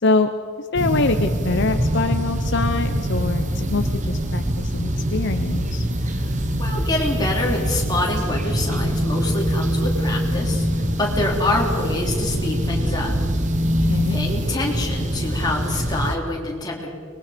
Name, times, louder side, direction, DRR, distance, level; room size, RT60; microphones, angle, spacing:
voice 1, 0.6-5.8 13.9-14.2, left 3 dB, 60° left, 8 dB, 0.8 m, -24 dB
sound 1, 0.7-16.1, equal, 35° right, 1.3 m, -23 dB
voice 2, 6.6-13.1 14.1-16.9, left 2 dB, 20° left, -2 dB, 3.5 m, -26 dB
24.0 x 21.0 x 5.2 m, 2.3 s
head